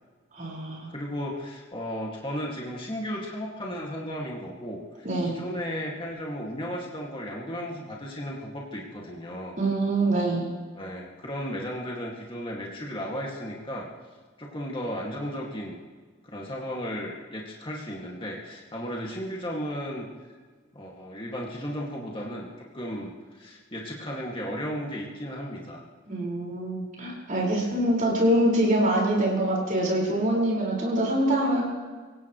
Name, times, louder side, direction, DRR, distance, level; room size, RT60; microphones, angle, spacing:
voice 1, 0.3-0.9 5.0-5.4 9.6-10.5 26.1-31.6, right 1 dB, 35° right, -3 dB, 5.2 m, -24 dB
voice 2, 0.9-9.6 10.7-13.9 14.4-15.8 16.2-20.1 20.7-25.8 27.6-27.7, equal, 25° left, -3 dB, 2.2 m, -35 dB
25.5 x 17.0 x 3.2 m, 1.5 s
head